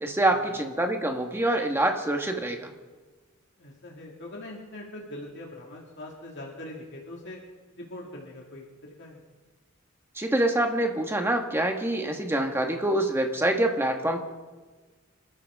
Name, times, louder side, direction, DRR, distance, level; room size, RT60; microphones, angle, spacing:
voice 1, 0.0-2.7 10.2-14.2, right 1 dB, 10° right, 4 dB, 1.5 m, -25 dB
voice 2, 3.6-7.4 7.8-9.2, left 1 dB, 60° left, -2 dB, 2.3 m, -42 dB
26.5 x 13.5 x 3.7 m, 1.3 s
head